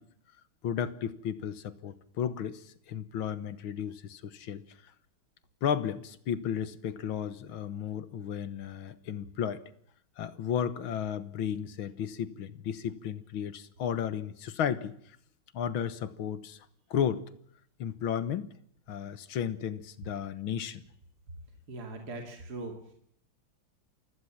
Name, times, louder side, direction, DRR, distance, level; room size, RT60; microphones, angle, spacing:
voice 1, 0.6-4.6 5.6-9.6 10.2-15.0 15.5-16.6 16.9-17.2 17.8-18.5 18.9-20.8, left 8 dB, 85° left, 14 dB, 2.0 m, -33 dB
voice 2, 21.7-22.9, right 2 dB, 50° right, 3 dB, 3.0 m, -40 dB
28.5 x 16.5 x 7.4 m, 0.67 s
omnidirectional pair, 2.2 m